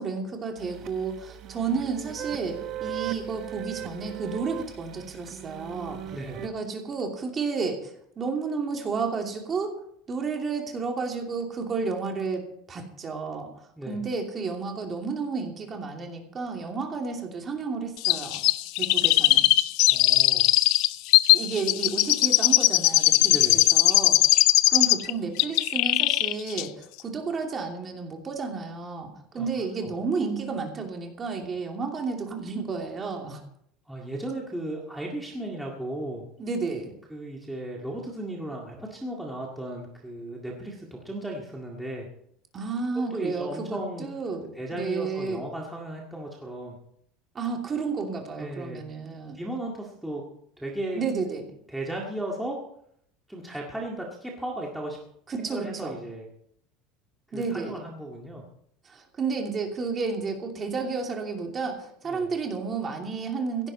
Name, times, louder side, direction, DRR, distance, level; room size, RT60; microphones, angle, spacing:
voice 1, 0.0-6.0 6.4-9.8 10.1-13.5 13.9-18.5 18.8-19.5 21.3-24.2 24.7-33.4 36.4-37.0 42.5-45.4 47.3-49.4 50.9-51.5 55.3-56.0 57.3-57.8 58.8-63.7, right 4 dB, 20° right, 2 dB, 2.7 m, -31 dB
sound 1, 0.6-6.5, right 11 dB, 40° right, 1.1 m, -38 dB
voice 2, 6.1-6.4 13.8-14.0 19.9-20.5 23.3-23.6 29.3-29.5 29.8-29.9 33.9-36.2 37.1-42.1 43.1-44.1 44.5-46.8 48.4-48.8 49.3-50.2 50.6-51.0 51.3-51.4 51.7-52.6 53.3-55.0 55.4-56.3 57.3-58.4 62.0-62.3, right 1 dB, 5° right, -2 dB, 2.0 m, -35 dB
Chirp tweet, 18.0-25.1 25.4-26.3 26.6-26.7, left 18 dB, 60° left, 0.5 m, -20 dB
17.0 x 14.5 x 4.2 m, 0.70 s
cardioid pair, 165°, 0 cm